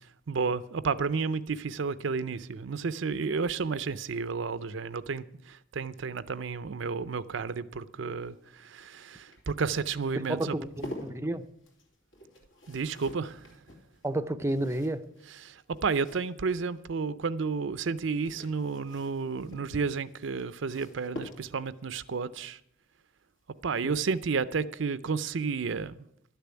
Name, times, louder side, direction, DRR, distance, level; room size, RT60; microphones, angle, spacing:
voice 1, 0.3-10.5 12.7-13.6 15.4-22.6 23.6-26.0, right 5 dB, 65° right, 0.5 m, -31 dB
sound 1, 8.0-16.8 17.9-21.8 23.4-23.8 24.0-24.1, left 1 dB, 75° left, 3.0 m, -48 dB
voice 2, 10.1-11.5 14.0-15.0 23.8-24.0, right 1 dB, 15° right, 0.5 m, -31 dB
12.0 x 6.9 x 9.6 m
head